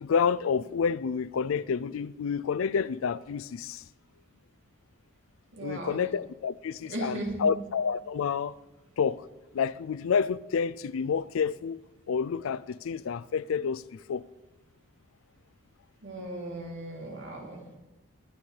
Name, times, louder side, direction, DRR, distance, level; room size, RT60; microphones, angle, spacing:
voice 1, 0.0-3.8 5.6-8.5 9.0-9.3 9.5-11.8 12.1-14.2, left 6 dB, 85° left, 0.4 m, -29 dB
voice 2, 5.5-6.0 6.9-7.5 16.0-17.8, right 1 dB, 65° right, 3.0 m, -37 dB
20.5 x 10.0 x 3.3 m
head